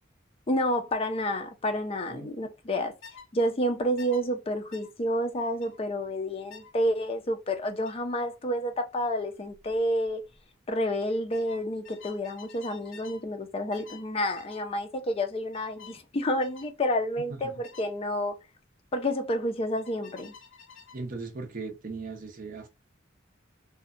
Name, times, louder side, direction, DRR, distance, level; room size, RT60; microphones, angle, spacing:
voice 1, 0.5-2.9 3.3-10.2 10.7-18.3 18.9-20.3, equal, 30° left, 0.4 m, -29 dB
sound 1, 3.0-3.3 4.0-4.2 4.7-4.9 5.6-5.8 6.5-6.7 7.8-8.0 9.5-9.7 10.0-10.4 11.3-13.2 13.7-14.1 14.4-14.7 15.5-16.0 16.4-16.7 17.6-17.9 19.8-21.0, left 6 dB, 80° left, 0.7 m, -50 dB
voice 2, 20.9-22.7, right 3 dB, 45° right, 0.6 m, -38 dB
2.7 x 2.1 x 2.4 m
head